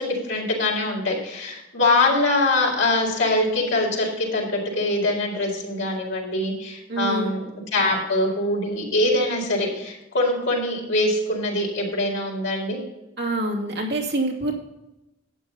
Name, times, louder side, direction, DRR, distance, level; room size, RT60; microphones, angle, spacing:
voice 1, 0.0-12.8, left 2 dB, 75° left, -3 dB, 4.4 m, -23 dB
voice 2, 6.9-7.4 13.2-14.5, right 2 dB, 55° right, -2 dB, 2.6 m, -26 dB
12.0 x 8.3 x 4.1 m, 0.95 s
head